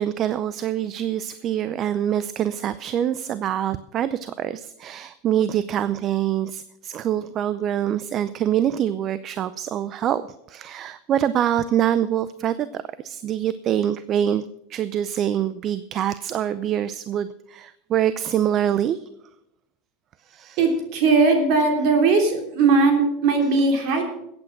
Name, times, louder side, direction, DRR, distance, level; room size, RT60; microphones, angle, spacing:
voice 1, 0.0-19.0 20.3-20.6, right 10 dB, 40° right, 15 dB, 0.5 m, -25 dB
voice 2, 20.6-24.0, right 4 dB, 60° right, 3 dB, 3.2 m, -19 dB
14.0 x 8.8 x 6.0 m, 0.80 s
supercardioid pair, 110°, 0 cm